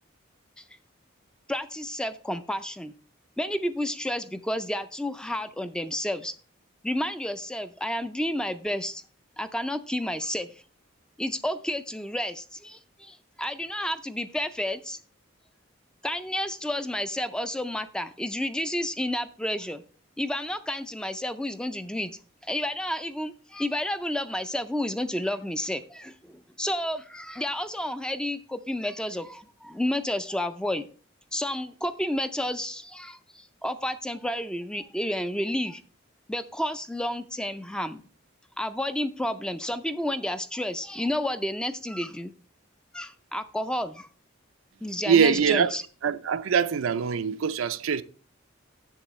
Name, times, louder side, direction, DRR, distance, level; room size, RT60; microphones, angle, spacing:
voice 1, 1.5-2.9 3.4-6.3 6.8-9.0 9.4-10.6 11.2-15.0 16.0-19.8 20.2-30.9 31.3-35.8 36.3-38.0 38.6-42.3 42.9-44.1 44.8-45.8, left 1 dB, 5° left, 0.3 m, -31 dB
voice 2, 45.1-45.7 46.0-48.0, right 6 dB, 90° right, 0.4 m, -23 dB
7.4 x 6.9 x 3.0 m
head